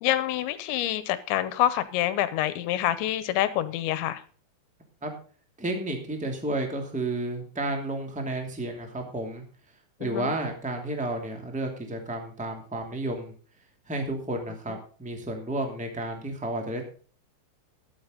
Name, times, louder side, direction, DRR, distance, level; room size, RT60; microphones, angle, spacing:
voice 1, 0.0-4.2 10.1-10.3, left 13 dB, 80° left, 3.1 m, -26 dB
voice 2, 5.6-9.4 10.0-13.3 13.9-16.8, right 1 dB, 5° right, 1.1 m, -32 dB
12.5 x 11.0 x 3.9 m
omnidirectional pair, 5.3 m